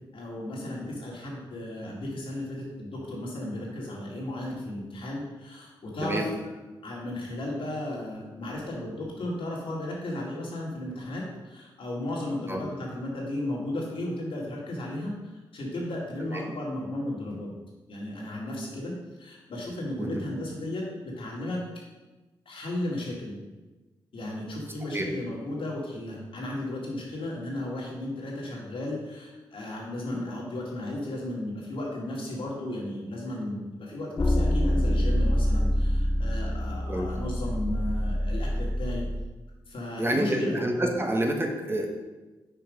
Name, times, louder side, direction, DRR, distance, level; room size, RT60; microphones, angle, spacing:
voice 1, 0.1-6.3 6.8-17.5 17.9-21.6 22.5-23.4 24.1-39.0 39.7-40.6, left 1 dB, 70° left, -3 dB, 2.0 m, -34 dB
voice 2, 24.8-25.1 36.9-37.1 40.0-41.9, right 1 dB, 25° right, 2 dB, 1.2 m, -28 dB
sound 1, 34.2-39.3, equal, 30° left, 0.6 m, -26 dB
5.7 x 4.6 x 5.1 m, 1.2 s
cardioid pair, 50°, 9 cm